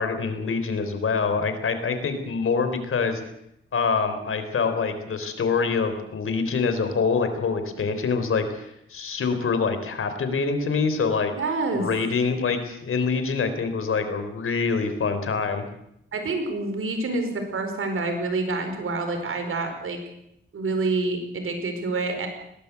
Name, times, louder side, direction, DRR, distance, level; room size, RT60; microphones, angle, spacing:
voice 1, 0.0-3.2 3.7-11.3 11.7-15.7, left 5 dB, 85° left, 8 dB, 3.6 m, -25 dB
voice 2, 11.3-11.9 16.1-20.0 20.5-22.3, right 3 dB, 90° right, 6 dB, 5.0 m, -27 dB
20.5 x 18.5 x 8.1 m, 0.79 s
wide cardioid pair, 90°, 21 cm